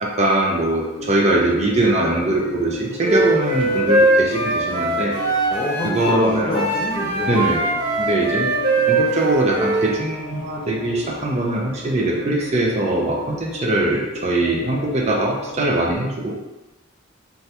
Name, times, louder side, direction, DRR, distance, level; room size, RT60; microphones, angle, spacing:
voice 1, 0.0-5.2 5.8-6.6 7.3-7.7 8.0-8.5 8.9-16.3, right 1 dB, 35° right, -1 dB, 0.5 m, -21 dB
sound 1, 1.0-16.0, left 2 dB, 65° left, 0.7 m, -37 dB
Wind instrument woodwind instrument, 3.0-6.2 6.5-9.9, right 2 dB, 55° right, 0.9 m, -21 dB
voice 2, 5.5-7.5, equal, 25° left, -2 dB, 0.4 m, -26 dB
2.8 x 2.3 x 3.1 m, 1.1 s
head